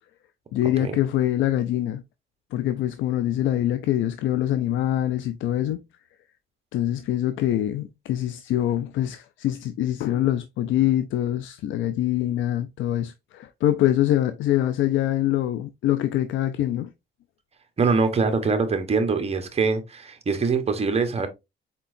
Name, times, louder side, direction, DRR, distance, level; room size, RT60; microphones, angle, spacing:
voice 1, 0.5-2.0 2.5-5.8 6.7-16.9, left 12 dB, 80° left, 0.4 m, -24 dB
voice 2, 17.8-21.3, right 4 dB, 30° right, 1.1 m, -23 dB
4.4 x 4.3 x 2.6 m
cardioid pair, 90°, 20 cm